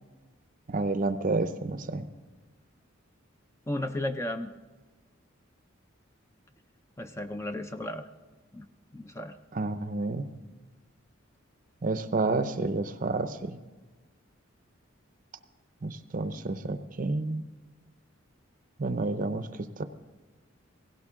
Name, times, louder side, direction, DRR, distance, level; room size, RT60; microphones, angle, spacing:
voice 1, 0.7-2.1 9.5-10.3 11.8-13.6 15.8-17.4 18.8-19.5 19.8-19.9, right 3 dB, 40° right, 11 dB, 0.6 m, -30 dB
voice 2, 3.7-4.5 7.0-8.1 8.5-8.7 8.9-9.4, left 1 dB, 15° left, 8 dB, 0.4 m, -34 dB
17.0 x 16.5 x 3.7 m, 1.3 s
head